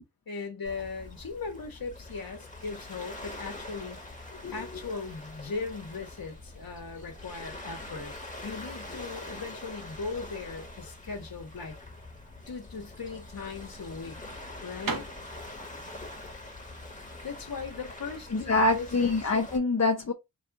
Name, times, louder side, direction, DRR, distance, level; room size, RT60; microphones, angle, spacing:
voice 1, 0.3-8.1 8.4-11.7 12.5-14.2 14.6-15.1 17.2-19.1, left 4 dB, 65° left, 1.4 m, -38 dB
Waves surf, 0.6-19.6, left 2 dB, 20° left, 1.5 m, -44 dB
Window Close, 14.8-18.6, right 4 dB, 60° right, 1.0 m, -41 dB
voice 2, 18.3-20.1, left 2 dB, 45° left, 0.8 m, -25 dB
4.1 x 2.5 x 4.7 m
wide cardioid pair, 105°, 38 cm